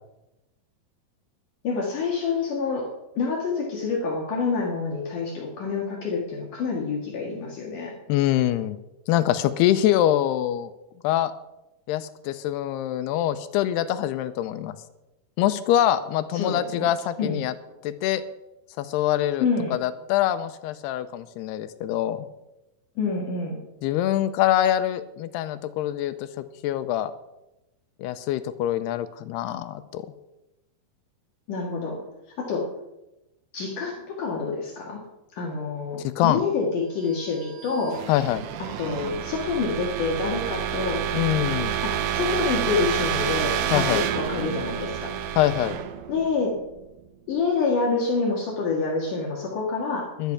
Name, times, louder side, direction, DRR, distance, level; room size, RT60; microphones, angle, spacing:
voice 1, 1.6-2.9 3.2-7.9 16.3-16.9 17.2-17.4 19.4-19.7 23.0-23.6 31.5-32.0 32.4-32.7 33.5-35.0 35.3-38.0 38.8-41.0 41.8-45.1 46.1-46.5 47.3-50.1, left 4 dB, 60° left, -2 dB, 3.0 m, -27 dB
voice 2, 8.1-8.8 9.1-10.7 11.0-11.3 11.9-14.8 15.4-17.5 17.8-18.2 18.8-19.5 19.7-22.3 23.8-27.1 28.0-30.1 36.0-36.4 38.1-38.5 41.1-41.8 43.7-44.1 45.4-45.8 50.2-50.3, left 12 dB, 90° left, 12 dB, 2.7 m, -24 dB
sound 1, 37.2-47.0, right 10 dB, 75° right, 1.9 m, -29 dB
11.5 x 11.5 x 5.8 m, 0.95 s
omnidirectional pair, 4.7 m